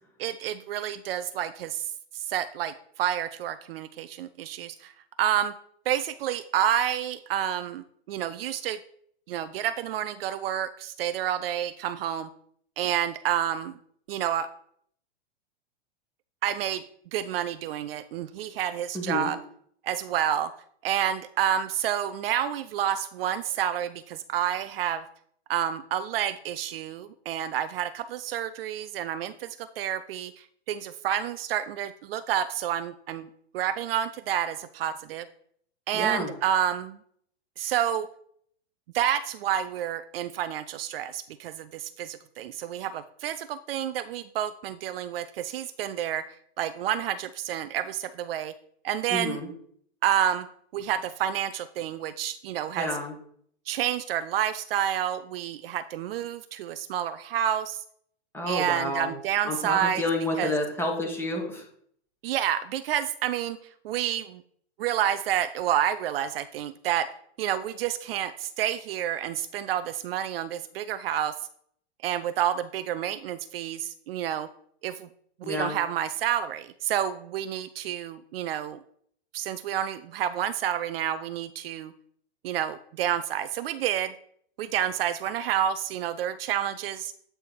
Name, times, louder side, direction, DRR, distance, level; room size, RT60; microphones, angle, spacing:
voice 1, 0.2-4.9 5.2-5.5 5.9-8.8 9.3-12.3 12.8-13.8 14.1-14.5 16.4-16.8 17.1-19.4 19.8-20.5 20.8-25.0 25.5-33.3 33.5-35.3 35.9-37.0 37.6-38.1 38.9-48.5 48.8-49.4 50.0-50.5 50.7-53.0 53.7-57.8 58.5-60.0 60.4-60.5 62.2-63.6 63.8-64.4 64.8-67.1 67.4-71.4 72.0-74.5 74.8-75.1 75.5-78.8 79.3-81.9 82.4-84.1 84.6-87.1, right 10 dB, 60° right, 12 dB, 0.5 m, -29 dB
voice 2, 18.9-19.3 35.9-36.3 49.1-49.5 52.8-53.1 58.3-59.1 59.4-61.6 75.4-75.8, left 1 dB, 5° left, 0 dB, 1.6 m, -29 dB
8.4 x 3.4 x 4.3 m, 0.65 s
hypercardioid pair, 110°, 33 cm